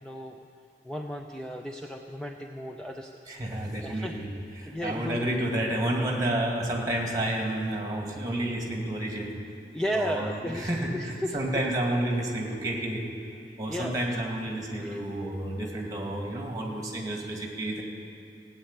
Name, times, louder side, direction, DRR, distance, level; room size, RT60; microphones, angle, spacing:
voice 1, 0.0-0.5 0.8-3.2 3.8-4.1 4.7-5.3 9.7-11.4 13.7-14.0 14.8-15.0, equal, 5° left, 2 dB, 0.5 m, -34 dB
voice 2, 3.3-4.3 4.6-9.3 9.9-13.0 13.6-17.8, right 1 dB, 20° right, 0 dB, 2.1 m, -30 dB
16.5 x 9.0 x 8.9 m, 2.5 s
head